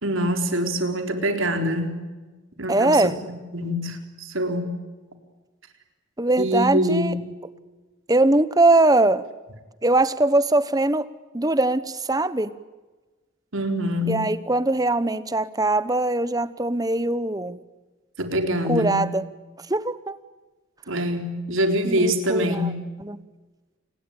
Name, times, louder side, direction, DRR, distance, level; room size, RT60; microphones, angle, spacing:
voice 1, 0.0-2.0 2.6-3.1 3.5-4.7 6.4-7.2 13.5-14.3 18.2-19.0 20.9-22.7, equal, 70° right, 5 dB, 4.1 m, -24 dB
voice 2, 2.7-3.2 6.2-7.1 8.1-9.2 9.8-11.1 11.3-12.5 14.1-17.6 18.6-19.2 19.7-20.2 21.8-22.7 23.0-23.2, right 2 dB, 20° right, 15 dB, 1.0 m, -21 dB
29.0 x 20.5 x 8.9 m, 1.3 s
head